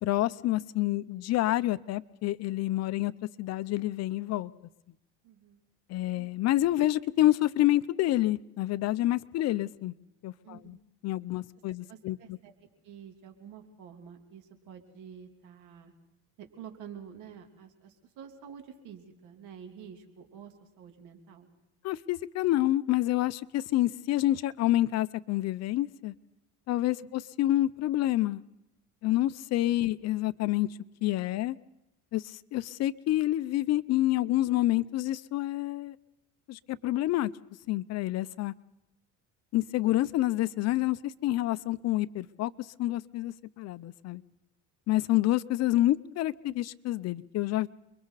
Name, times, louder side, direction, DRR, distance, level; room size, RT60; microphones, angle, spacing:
voice 1, 0.0-3.1 3.4-4.5 5.9-9.9 10.2-10.8 11.0-12.4 21.8-26.1 26.7-28.4 29.0-30.7 31.0-31.6 32.1-36.0 36.5-37.3 37.7-38.5 39.5-42.5 42.8-44.2 44.9-47.7, left 15 dB, 55° left, 16 dB, 0.7 m, -28 dB
voice 2, 5.2-5.6 6.1-6.3 10.4-10.8 11.9-12.5 12.8-15.9 16.4-21.5 27.0-27.1, right 8 dB, 75° right, 5 dB, 3.2 m, -49 dB
29.5 x 22.5 x 4.1 m, 0.89 s
cardioid pair, 125°, 31 cm